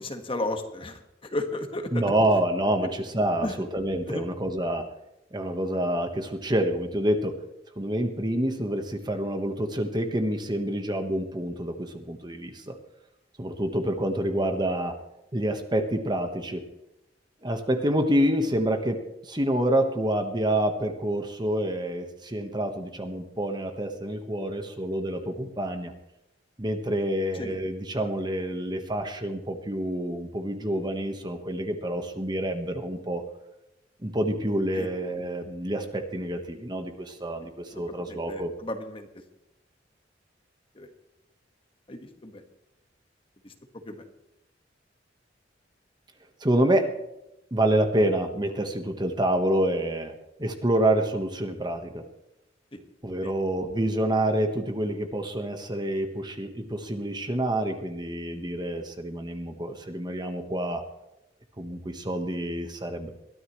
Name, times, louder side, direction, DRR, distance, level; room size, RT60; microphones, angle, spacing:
voice 1, 0.0-2.0 3.4-3.5 4.1-4.2 27.3-27.6 34.7-34.9 37.7-39.1 40.7-40.9 41.9-42.4 43.4-43.5 43.8-44.0 52.7-52.8 53.2-53.3, left 1 dB, 30° left, 6 dB, 1.6 m, -34 dB
voice 2, 1.9-4.9 5.3-7.4 7.8-12.8 13.4-15.0 15.3-16.6 17.4-25.9 26.6-33.2 34.0-38.5 46.4-46.9 47.5-50.1 50.4-52.1 53.0-60.8 61.6-63.1, right 1 dB, 25° right, 6 dB, 1.3 m, -27 dB
21.5 x 13.5 x 3.2 m, 0.88 s
head